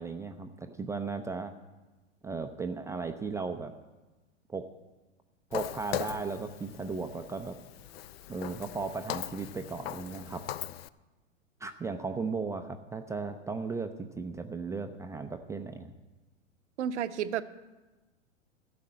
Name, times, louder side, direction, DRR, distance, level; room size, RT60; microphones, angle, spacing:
voice 1, 0.0-1.5 2.2-3.7 4.5-4.7 5.5-7.6 8.3-10.4 11.6-15.9, right 4 dB, 10° right, 6 dB, 0.4 m, -36 dB
Walk footsteps, 5.5-10.9, left 12 dB, 55° left, 0.5 m, -40 dB
voice 2, 16.8-17.4, right 9 dB, 70° right, 11 dB, 0.8 m, -31 dB
13.5 x 6.7 x 8.7 m, 1.2 s
hypercardioid pair, 105°, 36 cm